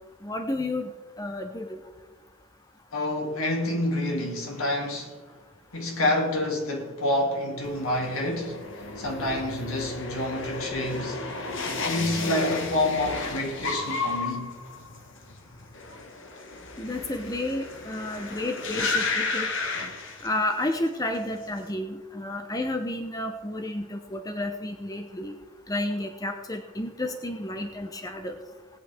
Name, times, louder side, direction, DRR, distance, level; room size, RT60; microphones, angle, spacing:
voice 1, 0.2-0.9 1.2-1.8 16.8-19.5 20.2-25.4 25.7-28.4, left 1 dB, 15° left, 0.7 m, -31 dB
voice 2, 2.9-5.2 5.7-11.3 11.8-14.5, left 1 dB, 75° left, 2.3 m, -28 dB
sound 1, 7.6-20.7 21.0-21.6, left 3 dB, 55° left, 1.2 m, -33 dB
19.5 x 8.8 x 3.4 m
head